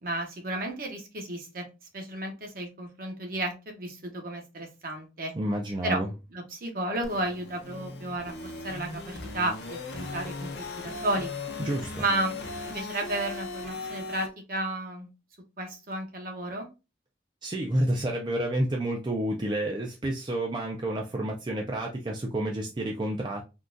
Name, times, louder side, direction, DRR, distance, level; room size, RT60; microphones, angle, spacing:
voice 1, 0.0-5.3 5.8-6.0 6.3-10.5 10.8-11.3 12.0-12.4 12.7-15.1 15.6-16.7, right 2 dB, 50° right, 3 dB, 0.9 m, -33 dB
voice 2, 5.3-6.1 11.6-12.0 17.4-23.4, right 1 dB, 25° right, 0 dB, 0.4 m, -29 dB
sound 1, 7.0-14.3, left 3 dB, 65° left, 0.8 m, -38 dB
3.7 x 2.3 x 2.5 m, 0.27 s
head